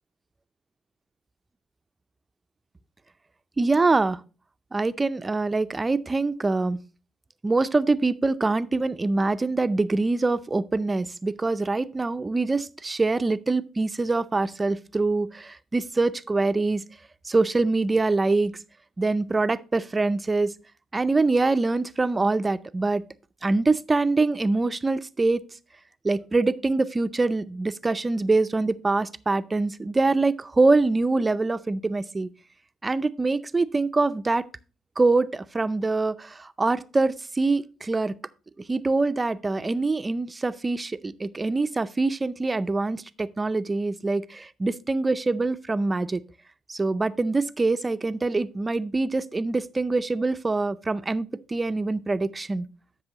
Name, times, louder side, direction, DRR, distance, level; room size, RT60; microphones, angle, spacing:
voice 1, 3.6-4.2 4.7-6.8 7.4-16.8 17.3-18.5 19.0-20.5 20.9-23.0 23.4-25.4 26.0-32.3 32.8-34.4 35.0-38.1 38.7-46.2 46.7-52.7, right 3 dB, 25° right, 0.5 m, -24 dB
12.0 x 6.1 x 2.9 m
supercardioid pair, 60°, 0 cm